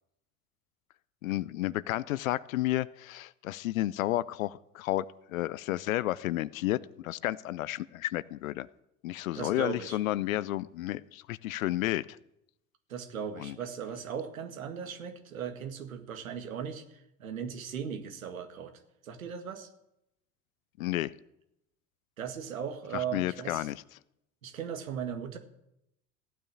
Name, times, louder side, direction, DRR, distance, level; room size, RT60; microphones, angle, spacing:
voice 1, 1.2-8.7 9.0-12.2 13.4-13.6 20.8-21.1 22.9-23.8, left 15 dB, 80° left, 19 dB, 0.7 m, -32 dB
voice 2, 9.3-10.0 12.9-19.7 22.2-23.7 24.4-25.4, right 7 dB, 85° right, 7 dB, 1.9 m, -38 dB
15.5 x 9.4 x 8.5 m, 0.83 s
hypercardioid pair, 70°, 40 cm